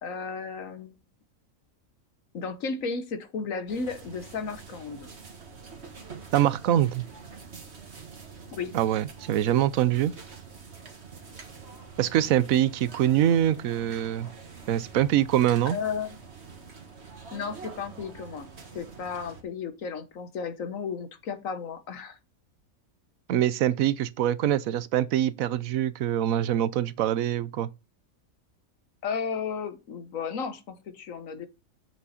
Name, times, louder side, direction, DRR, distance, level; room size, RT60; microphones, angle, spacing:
voice 1, 0.0-1.0 2.3-5.1 8.5-8.7 15.7-16.2 17.3-18.5 18.7-22.2 29.0-31.5, left 5 dB, 70° left, 1.4 m, -34 dB
sound 1, 3.7-19.4, right 5 dB, 50° right, 1.8 m, -46 dB
voice 2, 6.3-7.0 8.7-10.1 12.0-14.3 14.7-15.8 23.3-27.7, right 11 dB, 75° right, 1.1 m, -24 dB
7.7 x 6.1 x 4.1 m
omnidirectional pair, 1.5 m